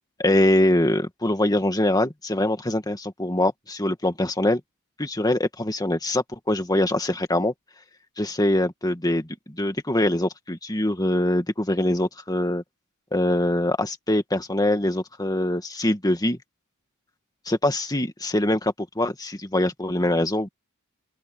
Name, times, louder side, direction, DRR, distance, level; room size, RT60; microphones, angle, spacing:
voice 1, 0.2-4.6 5.0-7.5 8.2-12.6 13.1-16.4 17.5-20.5, left 1 dB, 15° left, 2.1 m, -23 dB
open air
head